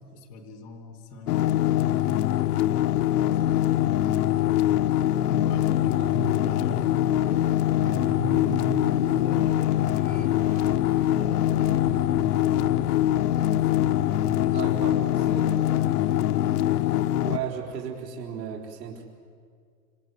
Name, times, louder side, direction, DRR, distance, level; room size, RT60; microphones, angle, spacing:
voice 1, 0.0-4.7 5.2-10.6 11.1-12.8 13.1-16.2, left 1 dB, 5° left, 5 dB, 0.6 m, -39 dB
sound 1, 1.3-17.4, left 13 dB, 65° left, 0.6 m, -23 dB
sound 2, 2.5-17.9, right 6 dB, 55° right, 3.8 m, -44 dB
voice 2, 5.8-6.3 14.5-15.8 17.2-19.0, right 7 dB, 80° right, -1 dB, 4.6 m, -36 dB
sound 3, 7.2-16.3, right 6 dB, 25° right, 0.8 m, -48 dB
26.0 x 25.5 x 8.1 m, 2.1 s
supercardioid pair, 180°, 50 cm